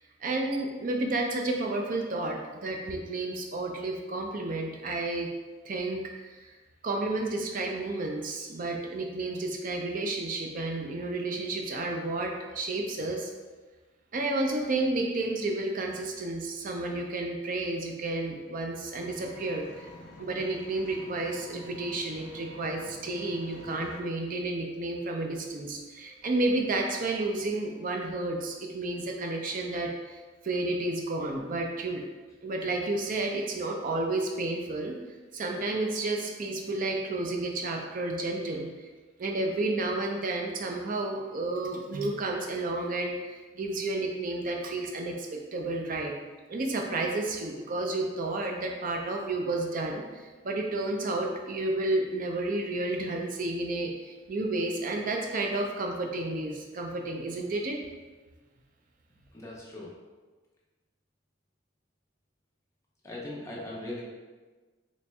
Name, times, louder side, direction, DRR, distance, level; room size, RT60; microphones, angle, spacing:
voice 1, 0.2-5.3 5.6-6.5 6.8-13.3 14.1-19.9 20.2-32.0 32.4-34.9 35.3-38.9 39.2-46.1 46.5-57.8, right 2 dB, 45° right, 2 dB, 0.4 m, -31 dB
Engine, 18.9-24.0, left 2 dB, 65° left, 0.7 m, -48 dB
voice 2, 59.3-59.9 63.0-64.0, left 1 dB, 15° left, -5 dB, 0.7 m, -39 dB
4.2 x 3.1 x 2.3 m, 1.3 s
head